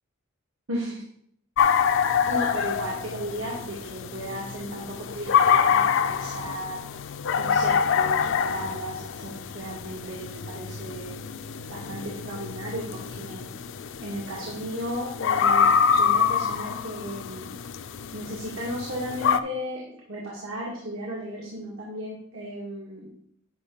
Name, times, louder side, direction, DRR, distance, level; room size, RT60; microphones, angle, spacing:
sound 1, 1.6-19.4, left 7 dB, 65° left, 0.5 m, -26 dB
voice 1, 2.2-6.8 7.3-11.2 11.7-13.5 14.0-17.5 18.1-23.1, equal, 80° right, -4 dB, 2.1 m, -35 dB
10.5 x 5.8 x 3.9 m, 0.68 s
head